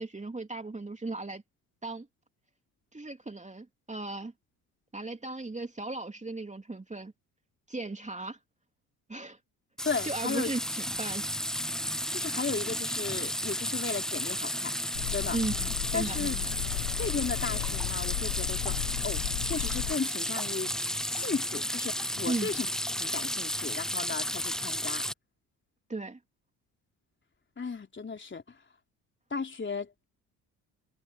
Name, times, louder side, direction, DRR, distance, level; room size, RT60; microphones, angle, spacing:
voice 1, 0.0-1.4 1.8-2.1 2.9-4.3 4.9-7.1 7.7-8.4 9.1-9.4 10.0-11.2 15.3-16.6 22.2-22.5 25.9-26.2, right 2 dB, 15° right, 3.0 m, -36 dB
sound 1, 9.8-25.1, equal, ahead, 0.9 m, -33 dB
voice 2, 9.9-10.5 12.1-14.7 15.1-15.4 15.9-16.4 17.0-20.7 21.1-22.7 23.0-25.0 27.6-28.4 29.3-30.0, left 5 dB, 25° left, 3.5 m, -35 dB
sound 2, 14.9-19.9, left 32 dB, 65° left, 1.0 m, -35 dB
figure-of-eight pair, 50°, 47 cm